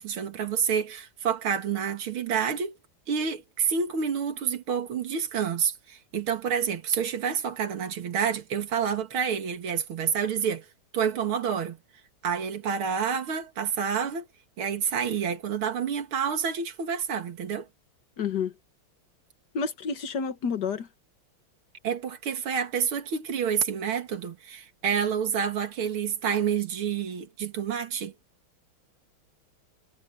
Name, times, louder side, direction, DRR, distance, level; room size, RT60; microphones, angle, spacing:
voice 1, 0.0-2.7 3.1-10.7 10.9-11.8 12.2-14.3 14.6-17.7 21.8-28.1, right 7 dB, 80° right, 2.7 m, -28 dB
voice 2, 18.2-18.5 19.5-20.9, left 6 dB, 55° left, 2.0 m, -29 dB
omnidirectional pair, 2.3 m